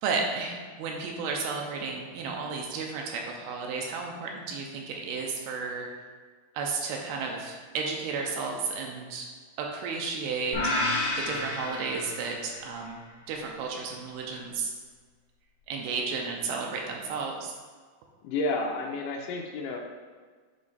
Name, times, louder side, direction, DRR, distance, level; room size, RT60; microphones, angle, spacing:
voice 1, 0.0-5.9 6.5-9.3 9.6-14.7 15.7-17.5, right 4 dB, 85° right, 0 dB, 2.6 m, -33 dB
sound 1, 10.5-12.7, left 2 dB, 60° left, 1.7 m, -30 dB
voice 2, 18.2-19.8, left 2 dB, 85° left, 0 dB, 1.9 m, -31 dB
7.5 x 3.1 x 4.1 m, 1.5 s
omnidirectional pair, 4.4 m